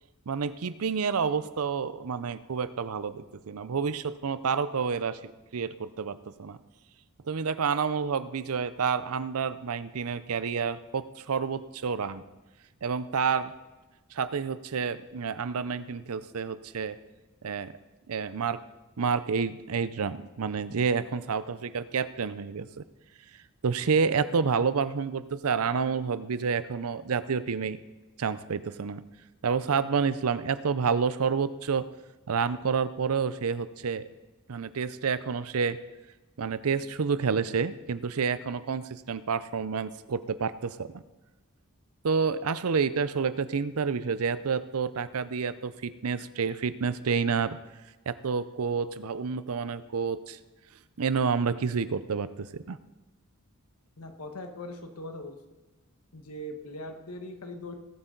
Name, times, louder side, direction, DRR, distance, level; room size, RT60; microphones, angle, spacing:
voice 1, 0.3-5.2 5.5-6.6 7.2-12.2 12.8-13.5 14.1-17.0 17.4-17.7 18.1-18.6 19.0-22.7 23.6-27.8 28.2-29.0 29.4-31.8 32.3-34.0 34.5-35.8 36.4-41.0 42.0-47.6 48.1-50.4 51.0-52.8, right 5 dB, 75° right, 14 dB, 0.6 m, -29 dB
voice 2, 54.0-55.4 56.1-57.7, left 1 dB, 90° left, 5 dB, 1.4 m, -40 dB
18.5 x 8.3 x 3.9 m, 1.1 s
head